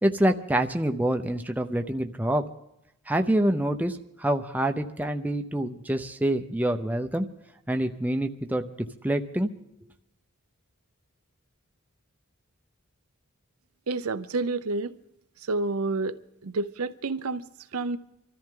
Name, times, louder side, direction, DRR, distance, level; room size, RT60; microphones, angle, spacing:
voice 1, 0.0-2.4 3.1-7.3 7.7-8.7 9.0-9.5, right 1 dB, 5° right, 0.6 m, -26 dB
voice 2, 13.9-15.0 15.4-18.0, right 3 dB, 80° right, 0.7 m, -30 dB
24.5 x 13.5 x 3.8 m
head